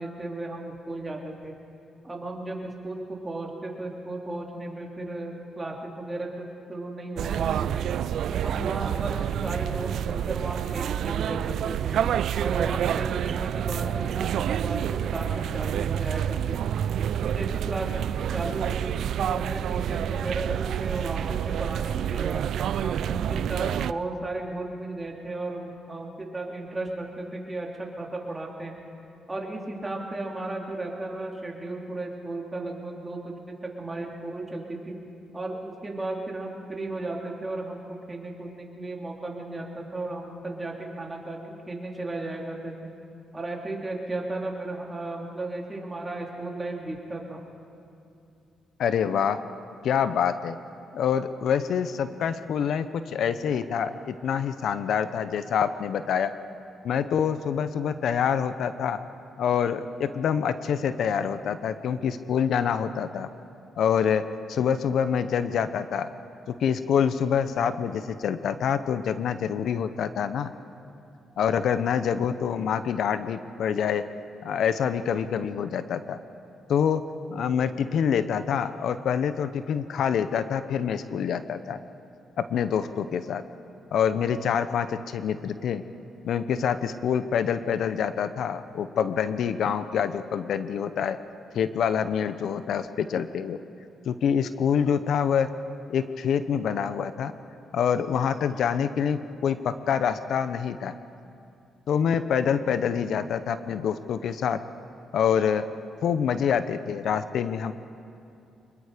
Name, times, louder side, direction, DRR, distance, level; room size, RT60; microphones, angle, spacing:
voice 1, 0.0-1.6 2.0-7.9 8.3-12.1 12.4-16.8 17.2-22.5 22.8-28.7 29.3-33.3 33.6-35.0 35.3-42.9 43.3-47.4, right 2 dB, 20° right, -1 dB, 3.5 m, -35 dB
sound 1, 7.2-23.9, right 10 dB, 75° right, 0.4 m, -28 dB
voice 2, 48.8-49.4 49.8-50.6 50.9-56.3 56.8-59.0 59.4-63.3 63.8-64.2 64.5-66.1 66.5-70.5 71.4-74.0 74.4-76.2 76.7-77.0 77.3-81.8 82.5-83.4 83.9-85.8 86.2-91.2 91.5-93.6 94.1-95.5 95.9-97.3 97.7-100.9 101.9-104.6 105.1-105.6 106.0-107.7, left 7 dB, 75° left, 11 dB, 0.8 m, -26 dB
25.5 x 21.5 x 5.1 m, 2.6 s
cardioid pair, 95°, 0 cm